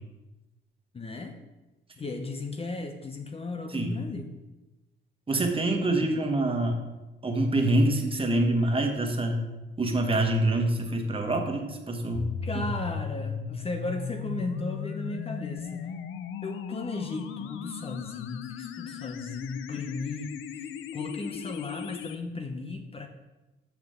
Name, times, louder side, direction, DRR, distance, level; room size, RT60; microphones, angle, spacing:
voice 1, 0.9-1.4 2.0-4.4 5.9-6.1 12.4-15.9 16.4-20.3 20.9-23.1, left 2 dB, 30° left, 5 dB, 0.8 m, -35 dB
voice 2, 3.7-4.0 5.3-6.8 7.2-9.5 9.8-12.7, right 1 dB, 25° right, 3 dB, 1.4 m, -26 dB
sound 1, 12.1-22.2, left 8 dB, 85° left, 0.6 m, -37 dB
6.0 x 5.7 x 6.7 m, 1.1 s
cardioid pair, 90°, 20 cm